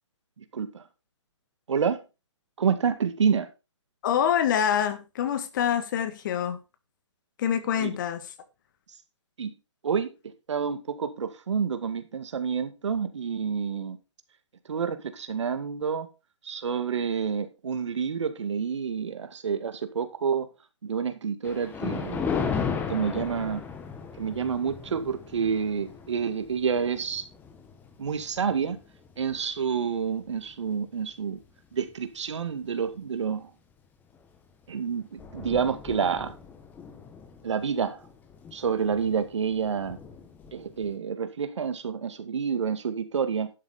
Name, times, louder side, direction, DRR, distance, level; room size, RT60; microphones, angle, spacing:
voice 1, 0.4-0.8 1.7-2.0 2.6-3.5 7.7-8.0 9.4-9.5 9.8-14.0 14.7-16.1 16.4-20.5 20.8-22.3 22.9-23.6 24.2-27.3 28.0-28.8 29.2-31.4 31.7-33.5 34.7-36.4 37.4-38.0 38.5-40.0 40.5-43.5, right 6 dB, 70° right, 2.1 m, -28 dB
voice 2, 4.0-6.6 7.4-8.3, left 9 dB, 40° left, 1.6 m, -26 dB
Thunder, 21.4-30.0 30.5-30.7 31.4-31.5 31.9-32.0 34.1-34.4 34.7-34.8 35.0-41.0, left 6 dB, 10° left, 1.3 m, -37 dB
11.5 x 7.6 x 4.3 m
hypercardioid pair, 155°, 16 cm